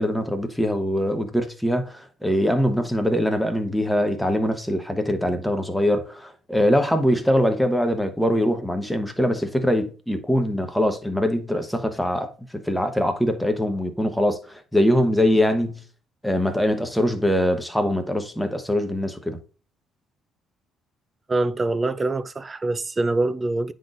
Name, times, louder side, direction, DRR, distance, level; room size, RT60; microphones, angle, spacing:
voice 1, 0.0-15.8 16.2-19.4, equal, ahead, 0.9 m, -23 dB
voice 2, 21.3-23.7, right 2 dB, 25° right, 0.4 m, -24 dB
9.4 x 4.0 x 2.5 m
cardioid pair, 105°, 0 cm